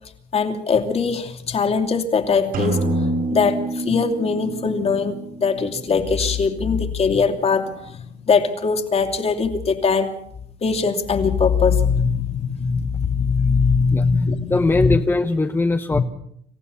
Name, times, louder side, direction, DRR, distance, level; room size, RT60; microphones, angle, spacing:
voice 1, 0.3-3.0 3.3-10.2 10.6-14.9 15.9-16.0, left 5 dB, 35° left, 6 dB, 2.7 m, -21 dB
sound 1, 2.5-6.3, right 1 dB, 65° right, 5.8 m, -27 dB
voice 2, 14.5-16.0, left 2 dB, 15° left, 6 dB, 1.0 m, -20 dB
26.5 x 15.5 x 7.0 m, 0.71 s
cardioid pair, 110°, 17 cm